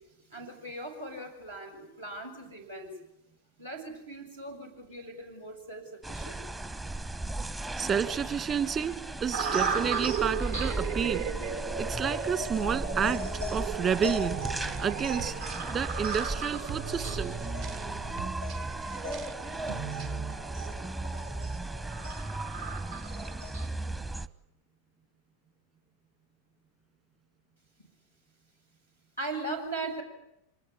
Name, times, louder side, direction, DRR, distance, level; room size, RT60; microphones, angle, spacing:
voice 1, 0.3-2.9 3.6-6.4 27.8-27.9 29.2-30.0, right 2 dB, 80° right, 1 dB, 6.7 m, -39 dB
sound 1, 6.0-24.3, right 2 dB, 10° right, 1.0 m, -36 dB
voice 2, 7.8-11.3 11.8-14.4 14.8-15.4 15.7-17.4, right 7 dB, 30° right, 11 dB, 2.0 m, -30 dB
sound 2, 9.3-23.7, right 4 dB, 65° right, 3.2 m, -36 dB
sound 3, 14.3-20.3, right 9 dB, 45° right, 1.6 m, -43 dB
25.5 x 20.5 x 9.8 m, 0.83 s
figure-of-eight pair, 90°, 0 cm